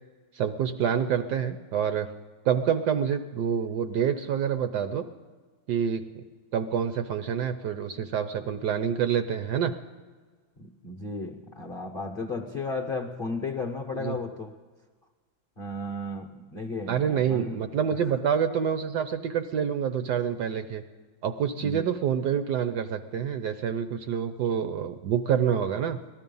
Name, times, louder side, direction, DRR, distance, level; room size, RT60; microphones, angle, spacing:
voice 1, 0.3-2.1 2.4-5.0 5.7-6.2 6.5-9.7 14.0-14.2 16.9-20.8 21.2-26.0, right 8 dB, 70° right, 9 dB, 1.1 m, -27 dB
voice 2, 10.6-14.5 15.6-17.6 18.0-18.1 21.6-21.9, left 3 dB, 45° left, 3 dB, 0.7 m, -34 dB
18.0 x 13.0 x 5.4 m, 1.4 s
omnidirectional pair, 2.2 m